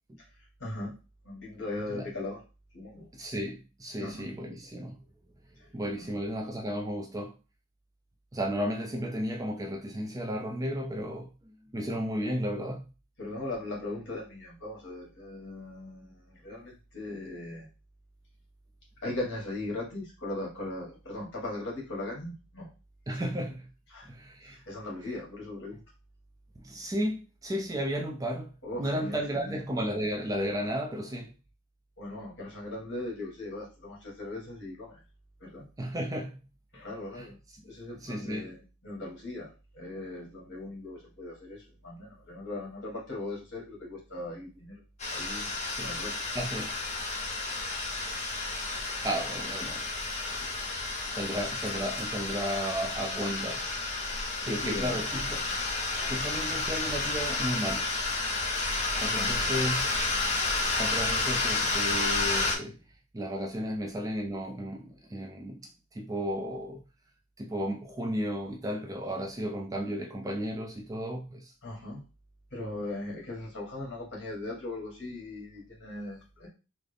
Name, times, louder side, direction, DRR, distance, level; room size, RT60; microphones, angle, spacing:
voice 1, 0.2-1.0 1.2-2.4 2.7-3.1 4.0-4.3 5.6-5.7 6.0-6.2 13.2-17.7 19.0-22.7 23.1-23.3 23.9-24.1 24.4-25.8 28.6-29.6 32.0-35.0 35.4-35.7 36.7-44.8 45.1-45.5 45.8-46.2 54.3-55.1 59.0-59.4 71.6-72.0 72.5-76.5, left 2 dB, 55° left, 1.8 m, -39 dB
voice 2, 3.1-5.0 5.7-7.4 8.3-12.8 23.1-23.7 24.0-24.6 25.0-25.1 26.6-28.5 28.8-31.3 35.8-36.4 37.2-37.3 37.6-37.7 38.0-38.5 45.7-45.9 46.3-46.7 49.0-49.8 50.3-50.5 51.1-53.7 54.0-54.2 54.4-55.5 56.0-57.9 59.0-60.0 60.8-62.8 63.1-66.8 67.4-71.5, equal, 15° right, 0.4 m, -34 dB
sound 1, 45.0-62.6, left 3 dB, 30° left, 0.7 m, -31 dB
3.7 x 2.1 x 3.3 m
head